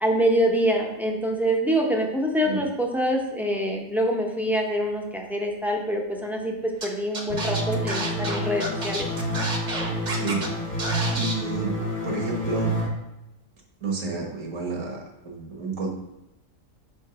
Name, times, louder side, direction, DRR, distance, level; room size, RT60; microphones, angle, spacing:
voice 1, 0.0-9.3, equal, ahead, 0 dB, 0.5 m, -25 dB
Scratching (performance technique), 6.8-6.9 7.1-10.5 10.8-11.3, right 2 dB, 40° right, 0.9 m, -30 dB
sound 1, 7.3-12.9, equal, 60° left, 1.6 m, -29 dB
voice 2, 11.2-11.7 12.0-12.7 13.8-15.9, right 3 dB, 75° right, 0 dB, 1.7 m, -30 dB
4.5 x 4.4 x 5.7 m, 0.92 s
omnidirectional pair, 1.4 m